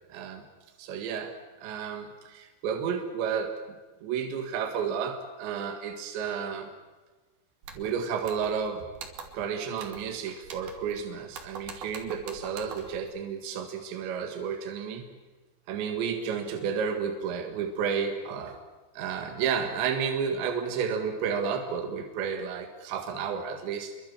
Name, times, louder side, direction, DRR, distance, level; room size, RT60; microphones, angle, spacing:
voice 1, 0.1-0.4 0.8-1.3 1.6-3.6 4.0-6.7 7.8-8.9 9.3-15.1 15.7-18.6 18.9-23.9, right 6 dB, 75° right, 5 dB, 4.1 m, -31 dB
sound 1, 7.6-7.9 8.3-8.7 9.0-9.5 9.8-10.1 10.4-11.0 11.3-13.0, right 5 dB, 60° right, 4.1 m, -43 dB
29.0 x 23.5 x 7.4 m, 1.3 s
omnidirectional pair, 5.2 m